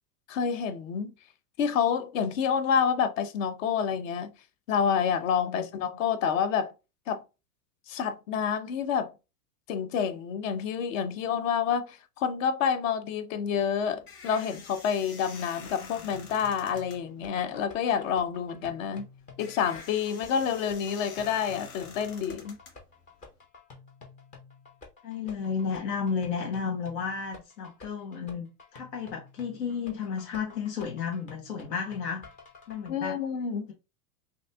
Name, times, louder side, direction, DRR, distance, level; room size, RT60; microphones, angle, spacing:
voice 1, 0.3-1.1 1.6-4.3 4.7-6.7 7.1-7.2 7.9-9.1 9.7-19.0 19.4-22.6 32.9-33.7, left 7 dB, 55° left, 0.7 m, -28 dB
sound 1, 13.5-23.4, left 5 dB, 70° left, 1.5 m, -48 dB
sound 2, 15.3-32.9, left 4 dB, 20° left, 0.4 m, -51 dB
voice 2, 25.0-32.3 32.7-33.2, left 6 dB, 85° left, 1.2 m, -33 dB
5.3 x 2.6 x 2.3 m
supercardioid pair, 140°, 47 cm